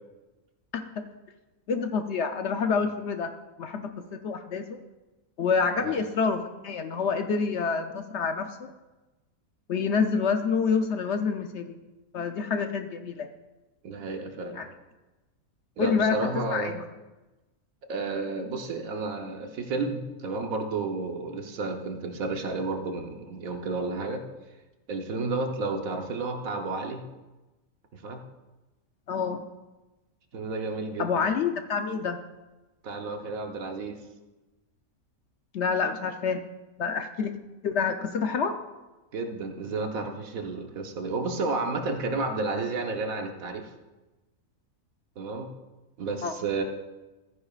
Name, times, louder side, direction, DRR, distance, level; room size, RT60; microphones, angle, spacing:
voice 1, 0.7-1.1 1.7-3.3 3.6-4.8 5.4-8.7 9.7-11.8 12.1-13.3 14.5-14.7 15.8-16.8 29.1-29.5 31.0-32.2 35.5-36.4 36.8-37.4 37.6-38.6 46.2-46.3, left 5 dB, 60° left, 7 dB, 0.8 m, -27 dB
voice 2, 13.8-14.6 15.8-16.7 17.9-24.3 24.9-27.0 27.9-28.2 30.3-31.2 32.8-34.0 39.1-43.7 45.2-45.5 46.0-46.6, right 3 dB, 75° right, 4 dB, 1.4 m, -31 dB
14.0 x 9.9 x 2.4 m, 1.1 s
omnidirectional pair, 1.5 m